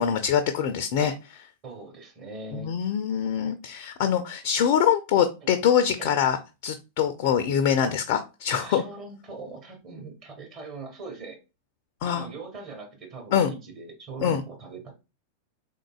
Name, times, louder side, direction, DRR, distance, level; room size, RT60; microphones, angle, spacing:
voice 1, 0.0-1.5 2.5-6.4 6.6-8.8 12.0-12.3 13.3-13.5 14.2-14.4, left 8 dB, 50° left, 9 dB, 0.4 m, -24 dB
voice 2, 1.6-2.7 5.4-5.5 6.0-6.1 8.5-11.4 12.1-14.9, right 4 dB, 35° right, 2 dB, 1.3 m, -40 dB
3.7 x 3.6 x 2.3 m, 0.28 s
figure-of-eight pair, 90°, 0 cm